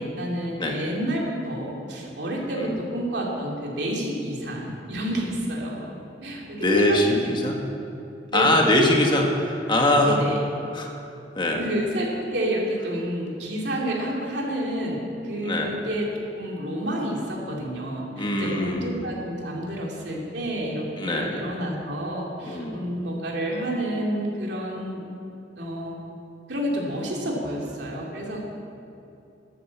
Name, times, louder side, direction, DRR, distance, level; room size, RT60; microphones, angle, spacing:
voice 1, 0.0-7.1 8.3-8.7 10.0-10.4 11.6-16.1 16.4-25.0 25.6-26.0 26.5-28.6, equal, 65° right, -2 dB, 3.0 m, -29 dB
voice 2, 6.6-7.5 8.3-10.2 10.7-10.9 11.3-11.7 15.4-15.8 18.2-19.1 21.0-21.4 22.5-22.9, left 1 dB, 25° left, 1 dB, 1.4 m, -22 dB
13.5 x 10.0 x 7.3 m, 2.7 s
head